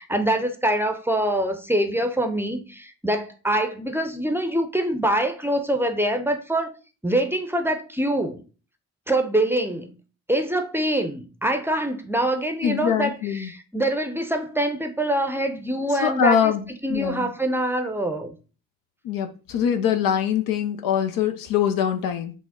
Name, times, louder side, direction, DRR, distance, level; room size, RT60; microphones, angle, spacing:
voice 1, 0.0-6.7 7.0-8.4 9.1-9.9 10.3-16.5 16.8-18.3, right 1 dB, 5° right, 0.6 m, -24 dB
voice 2, 12.6-13.5 16.0-16.6 16.9-17.3 19.0-22.3, left 8 dB, 70° left, 0.5 m, -23 dB
3.9 x 2.0 x 3.5 m
hypercardioid pair, 40°, 35 cm